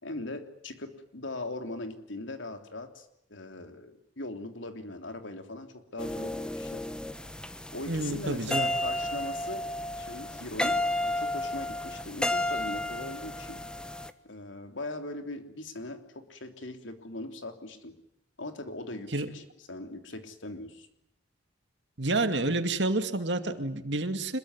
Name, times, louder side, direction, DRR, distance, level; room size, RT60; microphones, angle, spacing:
voice 1, 0.0-6.8 7.7-9.7 10.0-13.6 14.2-18.0 18.4-19.4 19.7-20.9, left 2 dB, 80° left, 7 dB, 3.3 m, -40 dB
sound 1, 6.0-14.1, left 1 dB, 5° left, 1.2 m, -32 dB
voice 2, 7.9-8.7 19.1-19.3 22.0-24.4, right 2 dB, 65° right, 8 dB, 2.4 m, -29 dB
26.5 x 22.0 x 9.9 m, 0.76 s
head